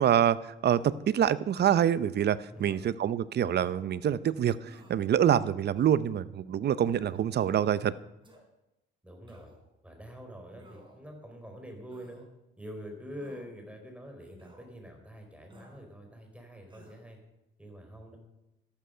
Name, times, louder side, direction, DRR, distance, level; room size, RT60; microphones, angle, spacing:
voice 1, 0.0-7.9, right 10 dB, 55° right, 17 dB, 0.7 m, -26 dB
sound 1, 1.5-2.0 2.6-2.8 3.6-3.8 4.6-5.1 5.7-6.1 6.9-7.3 8.2-8.4 9.3-9.7 10.5-11.1 11.9-12.2 13.2-13.5 14.4-14.6 15.5-15.8 16.7-17.0, right 1 dB, 25° right, 3.9 m, -55 dB
voice 2, 2.5-2.9 9.0-9.5 9.8-12.2 12.6-17.2 17.6-18.2, equal, 5° right, 3 dB, 4.2 m, -45 dB
13.5 x 11.5 x 5.6 m, 0.92 s
cardioid pair, 90°, 20 cm